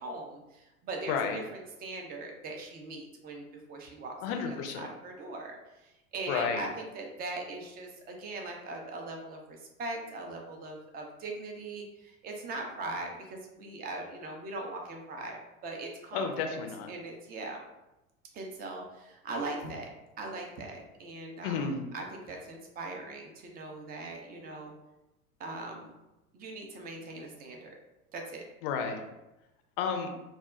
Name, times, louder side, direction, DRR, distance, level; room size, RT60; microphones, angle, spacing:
voice 1, 0.0-16.5 16.9-17.6 18.3-19.9 20.2-24.7 25.4-25.9 26.3-27.7 28.1-28.4, right 2 dB, 20° right, 1 dB, 0.4 m, -40 dB
voice 2, 1.1-1.4 4.2-4.9 6.3-6.7 16.1-16.9 21.4-21.8 28.6-29.0 29.8-30.1, left 6 dB, 45° left, 5 dB, 0.5 m, -31 dB
2.3 x 2.0 x 3.5 m, 0.97 s
figure-of-eight pair, 75°, 42 cm